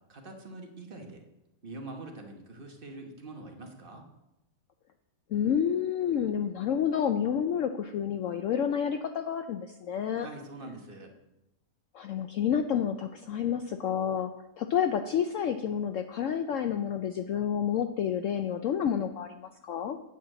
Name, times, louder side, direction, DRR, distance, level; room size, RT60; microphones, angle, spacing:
voice 1, 0.1-1.2 1.6-4.0 10.2-11.1, right 2 dB, 35° right, 3 dB, 1.1 m, -44 dB
voice 2, 5.3-10.3 11.9-20.0, left 8 dB, 75° left, 7 dB, 0.7 m, -29 dB
9.0 x 4.7 x 7.5 m, 0.94 s
omnidirectional pair, 1.8 m